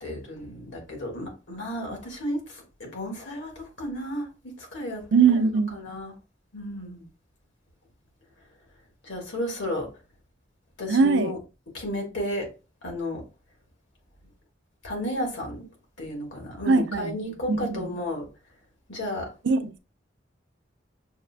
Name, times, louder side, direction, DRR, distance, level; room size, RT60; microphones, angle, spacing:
voice 1, 0.0-4.3 4.6-6.1 6.5-7.1 9.0-9.9 10.8-11.4 11.7-12.5 12.8-13.2 14.8-15.7 16.0-18.3 18.9-19.3, left 1 dB, 85° left, 1.6 m, -33 dB
voice 2, 5.1-5.8 10.9-11.3 16.7-17.2 17.5-17.9 19.4-19.8, right 5 dB, 80° right, 0.5 m, -21 dB
6.2 x 2.4 x 2.3 m
head